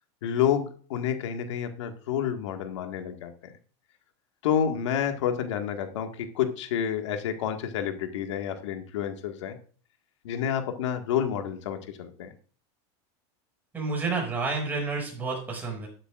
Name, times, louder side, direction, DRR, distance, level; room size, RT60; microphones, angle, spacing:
voice 1, 0.2-3.3 4.4-9.6 10.2-12.3, left 9 dB, 90° left, 6 dB, 2.0 m, -29 dB
voice 2, 13.7-15.9, right 4 dB, 10° right, -1 dB, 6.0 m, -30 dB
12.5 x 12.0 x 2.6 m, 0.42 s
supercardioid pair, 155°, 15 cm